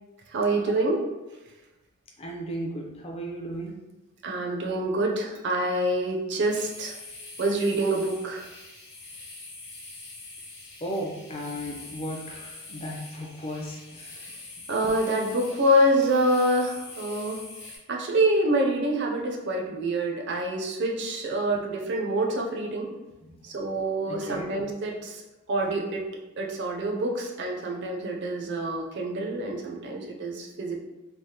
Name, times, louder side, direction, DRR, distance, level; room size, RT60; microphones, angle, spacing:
voice 1, 0.3-1.0 4.2-7.0 7.4-8.4 14.7-17.4 17.9-22.9 23.4-25.2 25.5-26.1 26.4-30.8, right 1 dB, 55° right, 0 dB, 0.5 m, -26 dB
voice 2, 2.2-3.7 10.8-14.2 23.2-23.3 24.0-24.5, equal, 30° left, -1 dB, 0.4 m, -35 dB
sound 1, 6.5-17.8, left 2 dB, 50° left, 1.0 m, -44 dB
3.3 x 2.0 x 2.7 m, 1.1 s
head